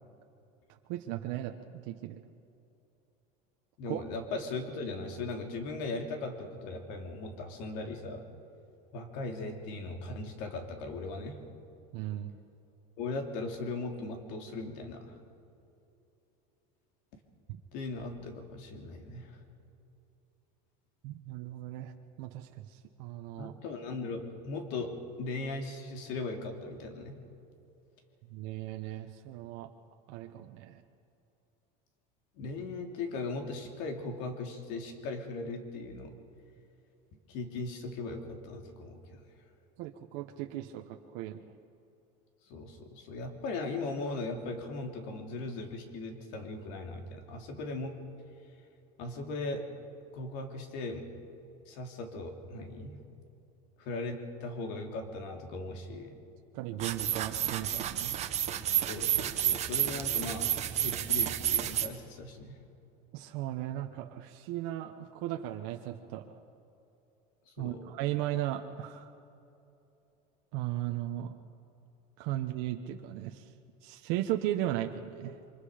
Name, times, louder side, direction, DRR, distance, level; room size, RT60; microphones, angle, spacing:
voice 1, 0.9-2.2 3.8-4.0 11.9-12.3 21.0-21.9 22.2-23.5 28.3-29.7 30.1-30.8 39.8-41.4 56.5-58.2 63.1-66.4 67.6-69.1 70.5-71.3 72.2-73.5 73.8-75.4, right 13 dB, 65° right, 4 dB, 1.1 m, -36 dB
voice 2, 3.8-8.2 8.9-11.4 13.0-15.2 17.7-19.4 23.4-27.2 32.3-36.1 37.3-39.2 42.5-48.0 49.0-49.6 50.1-51.0 51.7-53.0 53.8-56.2 58.9-62.6 67.5-67.8, left 3 dB, 60° left, 3 dB, 3.0 m, -38 dB
sound 1, 56.8-61.9, right 11 dB, 35° right, 1.2 m, -30 dB
27.0 x 25.0 x 5.1 m, 2.8 s
cardioid pair, 155°, 20 cm